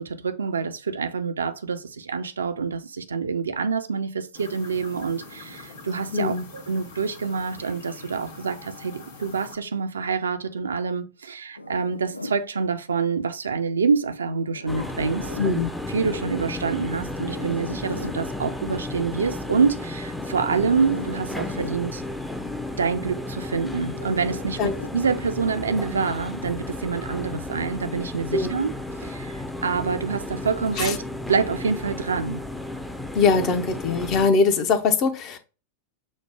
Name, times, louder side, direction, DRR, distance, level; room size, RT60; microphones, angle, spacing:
voice 1, 0.0-15.6 15.9-22.0 22.8-28.7 29.0-31.0 31.3-32.4, right 5 dB, 70° right, 0.5 m, -26 dB
sound 1, 4.3-9.6, left 2 dB, 60° left, 1.4 m, -44 dB
voice 2, 6.1-6.4 15.4-15.7 24.6-24.7 28.3-28.5 30.8-31.0 33.1-35.4, left 4 dB, 40° left, 0.7 m, -21 dB
Zipper (clothing), 11.6-12.4 14.4-15.6 17.1-18.2 20.6-21.8 23.9-25.0, left 1 dB, 85° left, 0.3 m, -39 dB
sound 2, 14.7-34.3, left 1 dB, ahead, 0.5 m, -33 dB
6.3 x 2.1 x 3.3 m
figure-of-eight pair, 90°, 0 cm